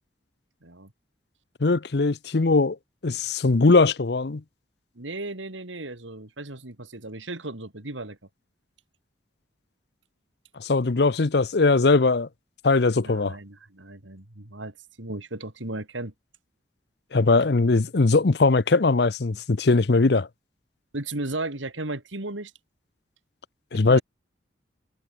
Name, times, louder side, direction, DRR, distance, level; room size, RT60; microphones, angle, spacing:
voice 1, 0.6-0.9 4.9-8.2 13.0-16.1 20.9-22.5 23.9-24.0, right 2 dB, 90° right, 3.0 m, -35 dB
voice 2, 1.6-2.8 3.0-4.4 10.6-12.3 12.6-13.4 17.1-20.3 23.7-24.0, left 3 dB, 60° left, 0.7 m, -20 dB
head